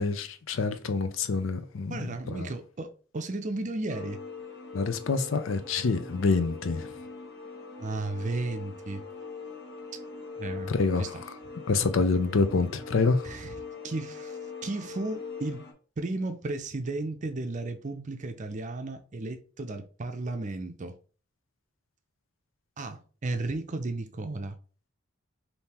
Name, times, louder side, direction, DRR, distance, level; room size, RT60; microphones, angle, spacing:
voice 1, 0.0-2.5 4.7-6.9 10.7-11.1 11.7-13.2, left 4 dB, 75° left, 0.5 m, -27 dB
voice 2, 1.9-4.2 7.8-9.0 10.4-11.2 13.2-13.6 13.8-15.7 16.0-20.9 22.8-24.6, right 2 dB, 40° right, 0.5 m, -34 dB
sound 1, 3.9-15.7, left 4 dB, 55° left, 1.1 m, -42 dB
3.6 x 2.8 x 4.2 m
head